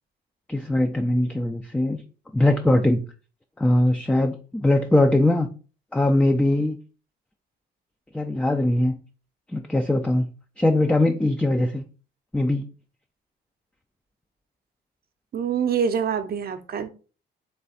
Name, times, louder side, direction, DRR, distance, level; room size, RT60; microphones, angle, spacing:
voice 1, 0.5-2.0 2.3-3.0 3.6-5.5 5.9-6.8 8.1-9.0 9.5-10.3 10.6-11.8 12.3-12.6, left 1 dB, 5° left, 0.4 m, -21 dB
voice 2, 15.3-16.9, right 7 dB, 50° right, 0.6 m, -25 dB
3.5 x 3.3 x 4.1 m
cardioid pair, 90°, 20 cm